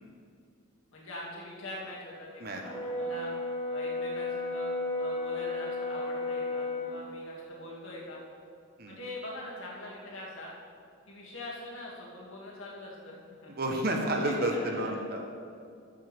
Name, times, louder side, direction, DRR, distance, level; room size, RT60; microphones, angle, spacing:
voice 1, 0.9-3.3 3.7-8.2 8.9-10.5 11.1-13.5 14.2-14.9, left 1 dB, 65° left, -5 dB, 2.3 m, -43 dB
Brass instrument, 2.6-6.9, left 2 dB, 25° left, 1.8 m, -33 dB
voice 2, 13.6-15.2, right 1 dB, 45° right, 2 dB, 1.0 m, -30 dB
14.0 x 7.4 x 3.5 m, 2.4 s
head